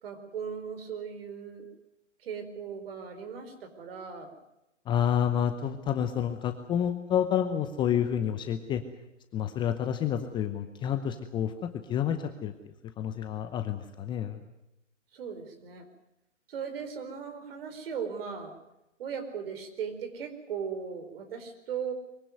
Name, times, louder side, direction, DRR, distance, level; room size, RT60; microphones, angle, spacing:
voice 1, 0.0-1.7 2.2-4.3 15.1-15.8 16.5-18.6 19.0-21.9, right 7 dB, 50° right, 7 dB, 4.5 m, -38 dB
voice 2, 4.9-8.8 9.3-12.5 13.0-14.4, left 9 dB, 10° left, 8 dB, 0.8 m, -29 dB
23.0 x 16.5 x 9.5 m, 0.91 s
figure-of-eight pair, 130°, 37 cm